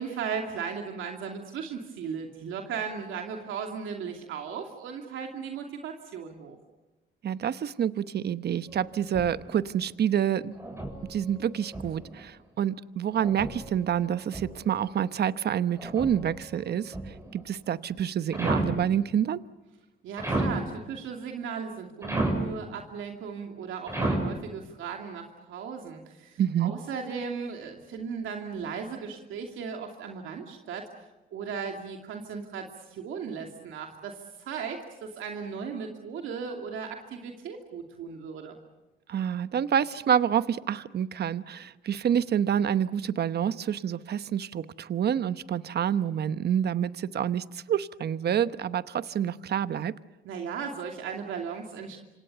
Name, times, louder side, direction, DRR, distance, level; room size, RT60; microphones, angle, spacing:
voice 1, 0.0-6.6 20.0-31.0 31.3-38.6 50.2-52.0, right 6 dB, 80° right, 2 dB, 2.7 m, -36 dB
voice 2, 7.2-10.6 11.1-19.4 26.4-26.7 39.1-49.9, right 9 dB, 55° right, 14 dB, 1.0 m, -28 dB
sound 1, 8.7-9.6 10.5-12.2 13.1-14.8 15.7-17.4 18.3-18.9 20.2-20.7 22.0-22.6 23.9-24.4, right 1 dB, 15° right, 6.6 m, -33 dB
27.0 x 26.5 x 6.9 m, 1.1 s
cardioid pair, 90°, 20 cm